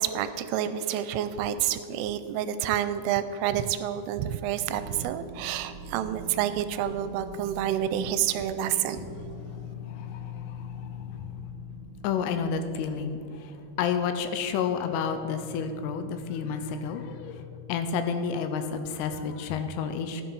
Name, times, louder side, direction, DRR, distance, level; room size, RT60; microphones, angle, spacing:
voice 1, 0.0-9.0, right 10 dB, 85° right, 12 dB, 3.1 m, -29 dB
sound 1, 4.6-16.2, right 4 dB, 45° right, 3.0 m, -46 dB
voice 2, 9.4-11.5 12.0-13.5 13.8-20.2, left 6 dB, 85° left, 8 dB, 3.4 m, -31 dB
15.0 x 9.7 x 4.7 m, 2.6 s
omnidirectional pair, 5.7 m